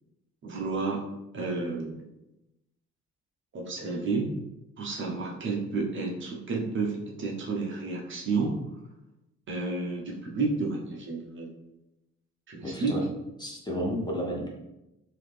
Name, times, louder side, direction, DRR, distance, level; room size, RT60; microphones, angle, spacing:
voice 1, 0.4-1.0 1.3-2.0 3.5-4.3 4.8-8.6 9.5-11.5 12.5-12.9, right 3 dB, 40° right, -1 dB, 0.8 m, -31 dB
voice 2, 12.6-13.0 13.4-14.5, equal, 15° left, -2 dB, 0.6 m, -31 dB
3.9 x 2.7 x 3.2 m, 0.92 s
cardioid pair, 140°, 30 cm